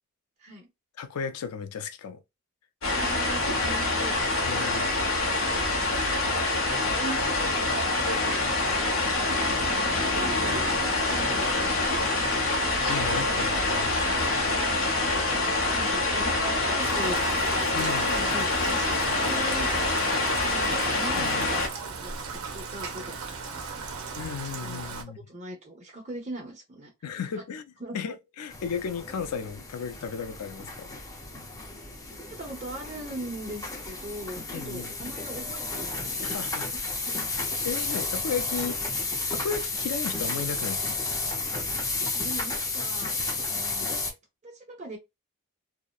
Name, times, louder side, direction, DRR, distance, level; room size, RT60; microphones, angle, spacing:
voice 1, 1.0-2.2 4.4-4.9 12.9-13.9 17.7-18.1 21.2-21.5 24.1-25.2 27.0-27.6 27.9-31.0 34.5-34.9 36.2-36.7 37.6-38.8 39.3-41.0, left 6 dB, 90° left, 0.4 m, -34 dB
sound 1, 2.8-21.7, left 2 dB, 60° left, 0.8 m, -26 dB
voice 2, 2.9-4.2 9.2-12.2 15.8-17.2 17.8-19.7 20.4-24.0 24.6-25.0 25.3-26.9 27.3-27.4 27.8-28.0 32.3-36.2 37.1-37.3 42.1-43.2 43.4-44.2 44.4-45.0, right 1 dB, 30° right, 0.9 m, -40 dB
Rain, 16.8-25.0, right 4 dB, 70° right, 0.6 m, -38 dB
sound 2, 28.5-44.1, left 3 dB, 15° left, 0.4 m, -32 dB
2.7 x 2.1 x 2.3 m
head